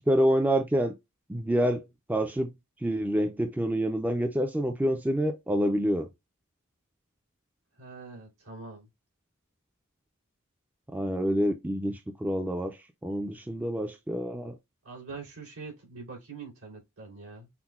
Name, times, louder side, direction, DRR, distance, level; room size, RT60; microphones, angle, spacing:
voice 1, 0.1-0.9 1.3-2.5 2.8-6.1 10.9-12.8 13.0-14.5, equal, 10° right, 0.3 m, -27 dB
voice 2, 7.8-8.9 14.8-17.5, right 4 dB, 80° right, 2.5 m, -44 dB
5.7 x 2.1 x 2.3 m
head